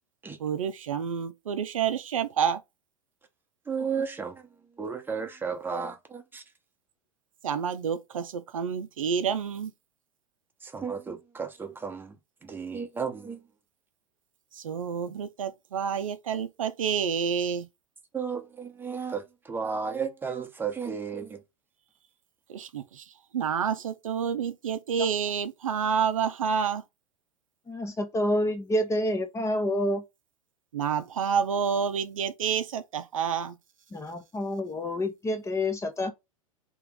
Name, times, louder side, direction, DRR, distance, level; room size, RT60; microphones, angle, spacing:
voice 1, 0.4-2.6 7.4-9.7 14.5-17.7 22.5-26.8 30.7-33.6, right 7 dB, 70° right, 0.5 m, -29 dB
voice 2, 3.7-4.4 4.8-6.4 10.6-12.2 12.4-13.4 18.1-21.4, right 6 dB, 10° right, 1.0 m, -33 dB
voice 3, 27.7-30.0 33.9-36.1, left 1 dB, 15° left, 0.8 m, -28 dB
3.4 x 3.0 x 3.5 m
figure-of-eight pair, 90°, 18 cm